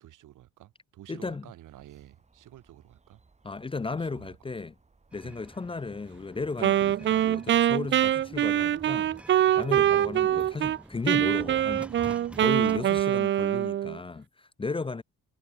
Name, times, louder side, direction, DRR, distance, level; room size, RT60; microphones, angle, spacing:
voice 1, 0.0-3.2 4.0-4.4 5.2-5.4, right 13 dB, 80° right, 4.6 m, -50 dB
voice 2, 1.1-1.5 3.4-4.7 5.1-11.9 12.4-15.0, left 4 dB, 15° left, 0.7 m, -35 dB
sound 1, 1.6-8.9, right 3 dB, 20° right, 7.7 m, -64 dB
sound 2, 5.1-13.0, right 1 dB, 5° right, 3.8 m, -48 dB
Wind instrument woodwind instrument, 6.6-10.8 11.1-14.0, right 11 dB, 40° right, 0.4 m, -24 dB
cardioid pair, 125°, 30 cm